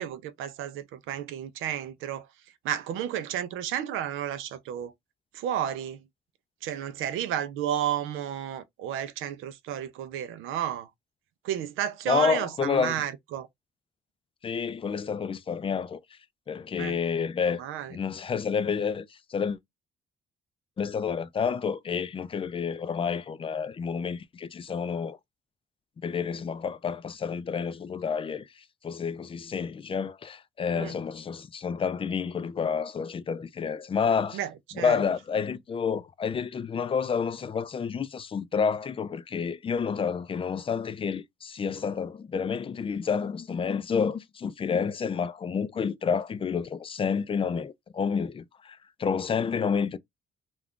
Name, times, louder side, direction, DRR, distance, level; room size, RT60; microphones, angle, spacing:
voice 1, 0.0-2.3 2.6-4.9 5.3-6.0 6.6-10.9 11.4-13.5 16.8-17.0 17.5-18.0 30.7-30.9 34.3-35.0, right 10 dB, 90° right, 0.5 m, -32 dB
voice 2, 12.1-12.9 14.4-16.0 16.5-17.6 17.9-19.6 20.8-25.2 26.0-28.5 28.8-34.4 34.8-50.0, left 6 dB, 25° left, 0.4 m, -29 dB
2.4 x 2.3 x 3.5 m
cardioid pair, 90°, 20 cm